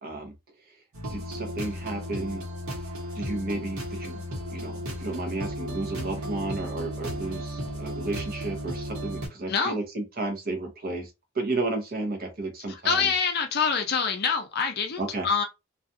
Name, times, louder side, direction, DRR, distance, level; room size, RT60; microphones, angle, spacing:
voice 1, 0.0-0.3 0.7-0.8 1.1-2.4 3.1-4.2 4.5-13.1 15.0-15.3, right 2 dB, 45° right, 0.7 m, -32 dB
sound 1, 0.9-9.3, equal, 80° right, 1.1 m, -35 dB
voice 2, 12.7-15.4, left 5 dB, 50° left, 0.5 m, -26 dB
2.4 x 2.3 x 2.6 m
head